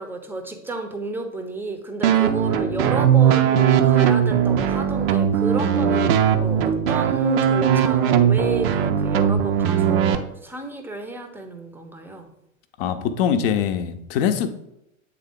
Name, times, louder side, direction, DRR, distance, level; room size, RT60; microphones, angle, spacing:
voice 1, 0.0-12.3, right 2 dB, 5° right, 5 dB, 0.7 m, -32 dB
sound 1, 2.0-10.2, right 8 dB, 45° right, 0.6 m, -19 dB
voice 2, 12.8-14.5, left 8 dB, 45° left, 9 dB, 0.7 m, -23 dB
8.3 x 3.6 x 3.5 m, 0.84 s
figure-of-eight pair, 85°, 41 cm